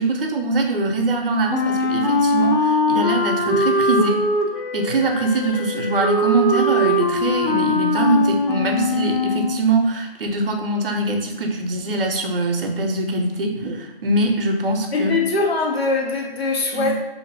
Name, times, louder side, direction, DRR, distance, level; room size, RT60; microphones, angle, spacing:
voice 1, 0.0-4.2 4.7-15.2 16.7-16.9, right 2 dB, 65° right, 3 dB, 0.6 m, -22 dB
Wind instrument woodwind instrument, 1.5-9.6, left 2 dB, 55° left, 0.4 m, -21 dB
voice 2, 14.9-17.0, left 3 dB, 85° left, 0 dB, 0.8 m, -22 dB
2.5 x 2.1 x 3.3 m, 1.0 s
figure-of-eight pair, 155°, 30 cm